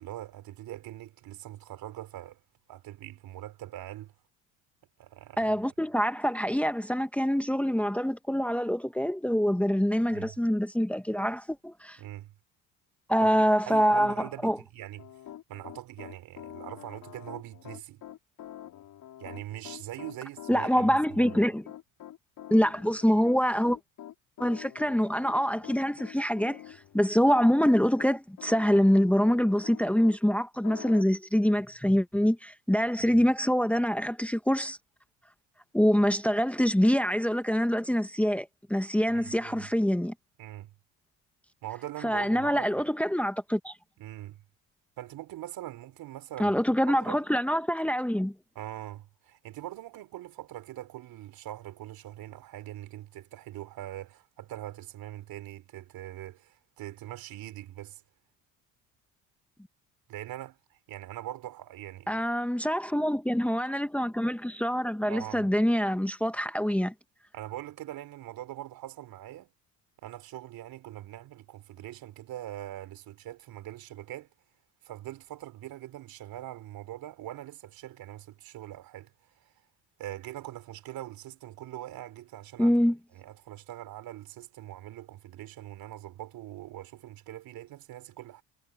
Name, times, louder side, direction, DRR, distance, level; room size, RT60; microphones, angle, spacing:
voice 1, 0.0-2.4 2.7-4.1 5.0-5.5 10.1-10.4 12.0-12.3 13.2-15.1 15.5-18.0 19.2-21.4 33.0-33.2 39.1-39.7 40.4-40.7 41.6-42.8 44.0-44.4 45.0-47.2 48.6-58.0 60.1-62.2 65.1-65.5 67.3-69.5 70.0-74.3 74.8-79.5 80.0-82.8 83.1-88.4, right 14 dB, 65° right, 3.7 m, -42 dB
voice 2, 5.4-12.0 13.1-14.1 14.4-14.6 20.5-21.6 22.5-23.8 24.4-34.8 35.7-40.1 42.0-43.7 46.4-48.3 62.1-66.9 82.6-83.0, equal, 5° left, 1.5 m, -25 dB
Piano, 15.0-30.2 30.6-31.0, left 12 dB, 60° left, 4.4 m, -46 dB
supercardioid pair, 80°, 38 cm